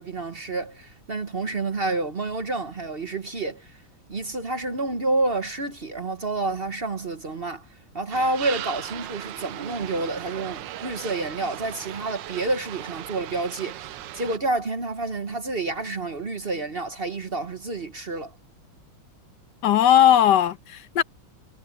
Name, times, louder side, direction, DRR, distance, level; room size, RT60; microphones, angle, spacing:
voice 1, 0.0-3.8 4.1-7.7 7.9-18.3, right 2 dB, 35° right, 1.0 m, -29 dB
sound 1, 8.1-14.4, right 13 dB, 70° right, 1.3 m, -37 dB
voice 2, 19.6-21.0, left 10 dB, 65° left, 1.5 m, -18 dB
omnidirectional pair, 2.2 m